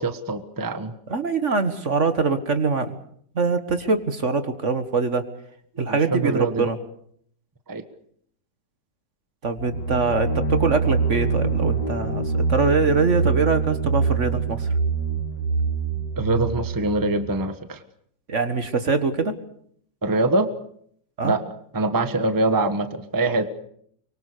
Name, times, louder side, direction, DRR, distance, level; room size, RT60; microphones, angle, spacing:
voice 1, 0.0-0.9 5.9-6.7 7.7-7.8 16.2-17.8 20.0-20.5 21.2-21.4 21.7-23.5, right 2 dB, 15° right, 10 dB, 1.3 m, -24 dB
voice 2, 1.1-2.9 3.3-5.3 5.8-6.8 9.4-14.7 18.3-19.3 21.2-21.3, right 4 dB, 45° right, 10 dB, 1.8 m, -23 dB
sound 1, 9.6-17.3, right 4 dB, 60° left, 2.9 m, -25 dB
24.5 x 23.0 x 6.8 m, 0.65 s
omnidirectional pair, 1.9 m